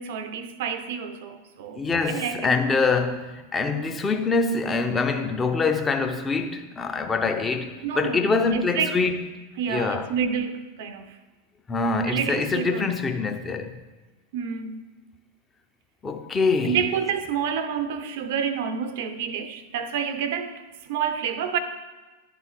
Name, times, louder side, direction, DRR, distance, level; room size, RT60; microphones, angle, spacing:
voice 1, 0.0-1.8 2.1-2.5 7.8-9.0 9.6-11.2 12.1-12.9 14.3-14.8 16.6-21.6, right 7 dB, 50° right, 0.5 m, -29 dB
voice 2, 1.8-9.3 9.7-10.1 11.7-13.7 16.0-16.8, left 4 dB, 15° left, 0.7 m, -24 dB
11.0 x 3.7 x 6.0 m
figure-of-eight pair, 90°, 0 cm